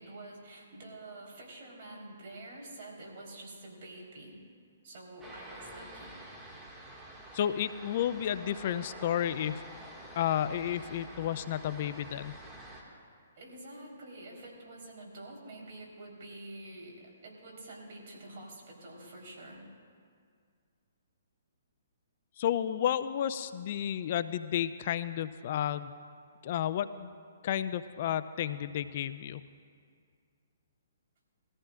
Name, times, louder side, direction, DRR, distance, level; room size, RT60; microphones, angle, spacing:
voice 1, 0.0-4.3 4.8-6.1 13.3-19.6, right 2 dB, 55° right, -2 dB, 3.9 m, -47 dB
sound 1, 5.2-12.8, right 1 dB, 15° right, 2.0 m, -48 dB
voice 2, 7.3-9.6 10.2-12.3 22.4-25.9 26.4-27.1 27.4-29.4, left 10 dB, 50° left, 14 dB, 0.4 m, -32 dB
21.0 x 14.5 x 2.5 m, 2.1 s
hypercardioid pair, 135°, 0 cm